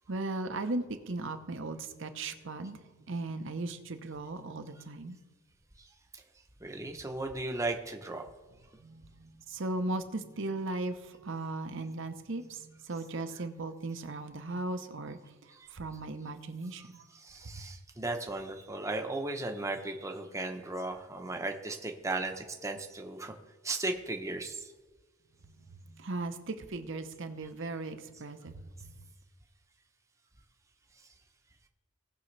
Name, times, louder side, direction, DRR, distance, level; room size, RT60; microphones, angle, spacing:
voice 1, 0.1-5.2 8.8-17.0 17.5-17.6 25.4-29.1, right 2 dB, 60° right, 8 dB, 0.8 m, -37 dB
voice 2, 6.6-8.3 17.2-23.4 23.6-24.7, right 2 dB, 15° right, 4 dB, 0.8 m, -36 dB
18.0 x 6.3 x 3.3 m, 1.3 s
head